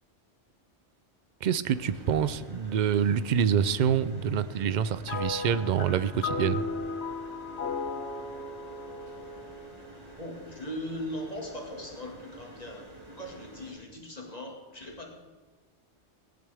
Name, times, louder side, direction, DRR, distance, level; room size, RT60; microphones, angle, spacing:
voice 1, 1.4-6.7, right 8 dB, 55° right, 14 dB, 0.5 m, -26 dB
sound 1, 1.7-13.7, right 1 dB, 35° right, 2.3 m, -50 dB
sound 2, 5.1-10.6, left 4 dB, 65° left, 1.2 m, -36 dB
voice 2, 10.2-15.1, equal, 35° left, 0 dB, 2.1 m, -39 dB
17.0 x 10.5 x 3.5 m, 1.3 s
omnidirectional pair, 1.2 m